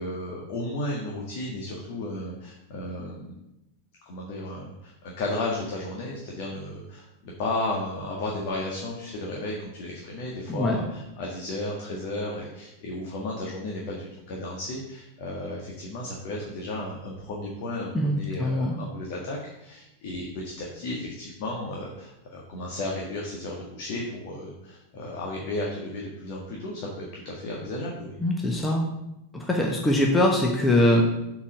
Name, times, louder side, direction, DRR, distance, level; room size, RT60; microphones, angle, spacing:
voice 1, 0.0-3.4 4.0-28.2, left 1 dB, 45° left, -2 dB, 1.6 m, -34 dB
voice 2, 10.5-10.8 17.9-18.8 28.2-28.8 29.3-31.0, left 1 dB, 10° left, 0 dB, 1.1 m, -22 dB
7.1 x 4.8 x 6.5 m, 0.90 s
figure-of-eight pair, 90°, 0 cm